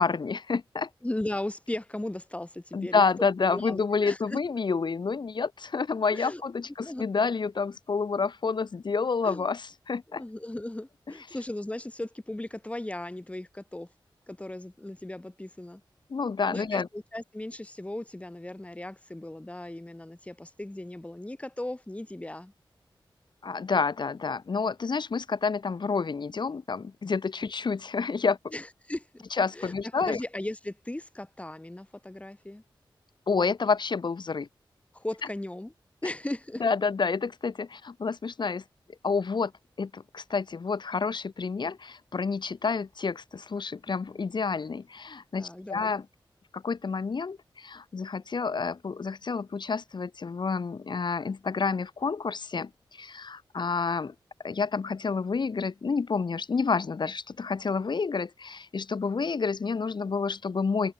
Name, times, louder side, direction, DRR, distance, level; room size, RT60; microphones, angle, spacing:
voice 1, 0.0-0.9 2.7-10.2 16.1-16.9 23.4-28.4 29.4-30.2 33.3-34.5 36.6-38.6 39.0-39.5 39.8-46.0 46.5-54.1 54.4-60.9, left 5 dB, 60° left, 1.5 m, -29 dB
voice 2, 1.0-3.0 3.5-4.4 6.1-6.4 6.8-7.1 9.2-9.5 10.1-13.9 14.3-15.8 16.5-22.5 28.5-29.2 29.5-32.6 34.9-35.7 36.0-36.6 45.4-45.9, left 1 dB, 15° left, 2.6 m, -37 dB
open air
wide cardioid pair, 80°, 9 cm